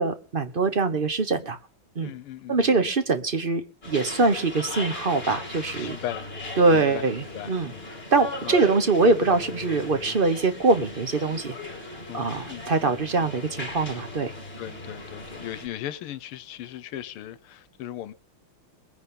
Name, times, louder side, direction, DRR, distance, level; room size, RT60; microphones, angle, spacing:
voice 1, 0.0-1.6 1.9-2.1 2.5-6.0 6.6-7.7 8.1-11.5 12.1-14.3, right 3 dB, 35° right, 0.9 m, -23 dB
voice 2, 2.0-2.9 5.8-7.1 7.3-7.9 8.4-8.6 12.1-13.3 14.6-18.1, left 12 dB, 85° left, 1.7 m, -38 dB
sound 1, 3.8-15.7, left 2 dB, 25° left, 3.7 m, -38 dB
22.0 x 10.0 x 3.8 m
omnidirectional pair, 2.4 m